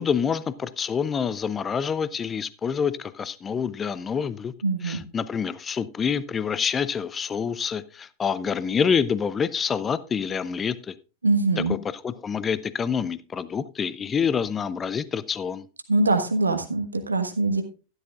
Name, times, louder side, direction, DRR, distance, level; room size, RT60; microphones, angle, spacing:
voice 1, 0.0-4.5 4.8-10.9 11.6-15.7, left 6 dB, 20° left, 17 dB, 0.5 m, -27 dB
voice 2, 4.6-5.0 11.2-11.7 15.9-17.6, right 2 dB, 75° right, 6 dB, 1.4 m, -23 dB
12.5 x 12.0 x 2.4 m, 0.33 s
figure-of-eight pair, 90°, 0 cm